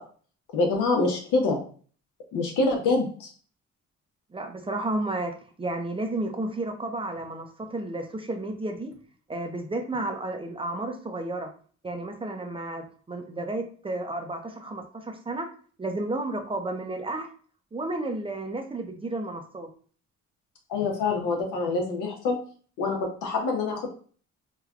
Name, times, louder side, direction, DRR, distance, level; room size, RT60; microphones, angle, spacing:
voice 1, 0.5-1.6 2.3-3.3 20.7-22.4 22.8-23.9, left 3 dB, 85° left, 2 dB, 0.8 m, -25 dB
voice 2, 4.3-8.9 9.3-11.5 11.8-15.5 15.8-17.3 17.7-19.7, right 2 dB, 20° right, 5 dB, 0.4 m, -32 dB
3.2 x 2.2 x 2.4 m, 0.43 s
cardioid pair, 90°, 30 cm